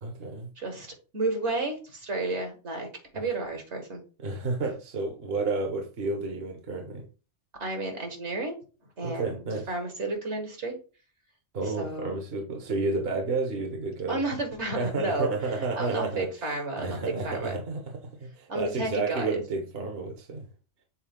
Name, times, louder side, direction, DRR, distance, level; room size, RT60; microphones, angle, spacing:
voice 1, 0.0-0.5 3.1-3.3 4.2-7.0 9.0-9.7 11.5-14.2 14.7-17.8 18.3-20.5, right 3 dB, 60° right, 3 dB, 1.2 m, -31 dB
voice 2, 0.6-2.9 3.1-4.0 7.6-8.6 9.0-10.7 11.6-12.2 14.1-17.0 17.2-17.6 18.5-19.4, right 2 dB, 75° right, 3 dB, 2.0 m, -32 dB
7.2 x 4.1 x 3.7 m, 0.35 s
omnidirectional pair, 1.2 m